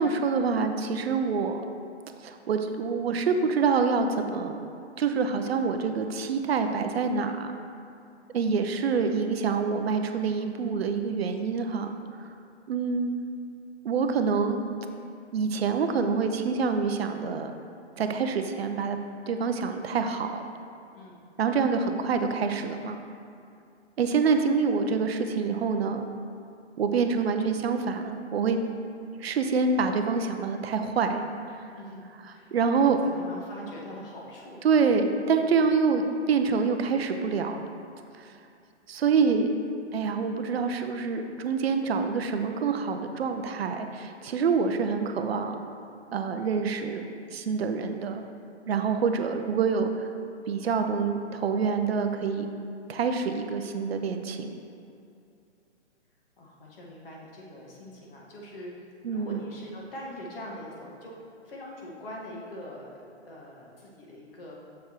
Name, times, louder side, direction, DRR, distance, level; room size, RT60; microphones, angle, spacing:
voice 1, 0.0-1.6 2.2-4.6 5.0-7.5 8.3-11.9 12.7-13.1 13.8-14.6 15.3-17.5 18.0-19.0 19.3-20.4 21.4-23.0 24.0-26.1 26.8-28.6 29.2-31.2 32.5-33.0 34.6-37.6 38.9-39.5 39.9-45.6 46.1-48.2 48.7-50.1 50.5-52.5 52.9-54.6 59.0-59.4, right 5 dB, 60° right, 7 dB, 0.6 m, -26 dB
voice 2, 32.3-34.6 56.4-58.7 59.1-61.1 61.4-63.0 63.2-64.6, equal, 50° left, -3 dB, 1.6 m, -43 dB
7.1 x 6.6 x 3.0 m, 2.4 s
hypercardioid pair, 150°, 35 cm